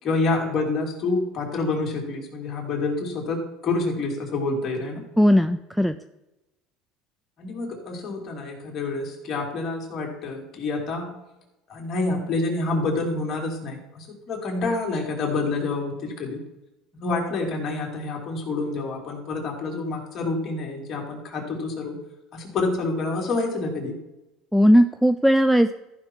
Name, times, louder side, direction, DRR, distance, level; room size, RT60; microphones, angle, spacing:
voice 1, 0.0-5.0 7.4-11.2 11.7-16.4 16.9-22.0 22.3-23.9, left 3 dB, 35° left, 0 dB, 2.8 m, -28 dB
voice 2, 5.2-5.9 24.5-25.7, equal, ahead, 11 dB, 0.3 m, -17 dB
14.0 x 5.9 x 4.5 m, 0.97 s
cardioid pair, 135°, 0 cm